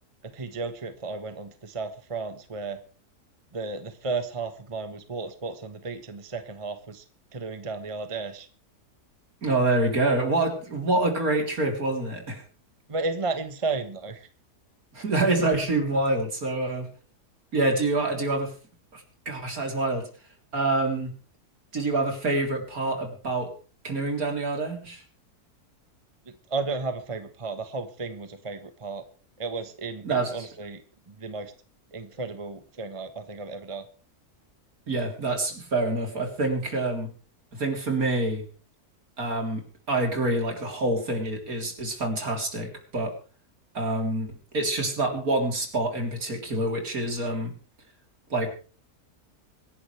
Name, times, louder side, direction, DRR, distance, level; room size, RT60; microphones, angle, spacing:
voice 1, 0.2-2.8 3.5-7.0 7.3-8.5 12.9-14.3 26.5-29.0 29.4-30.8 31.1-31.5 31.9-33.8, right 3 dB, 20° right, 9 dB, 1.3 m, -33 dB
voice 2, 9.4-12.4 14.9-16.9 17.5-18.5 18.9-20.1 20.5-21.1 21.7-23.5 23.8-25.0 30.0-30.5 34.9-37.1 37.5-38.4 39.2-43.1 43.7-47.5 48.3-48.5, right 2 dB, 65° right, 3 dB, 4.0 m, -26 dB
25.5 x 11.0 x 3.3 m, 0.38 s
omnidirectional pair, 1.6 m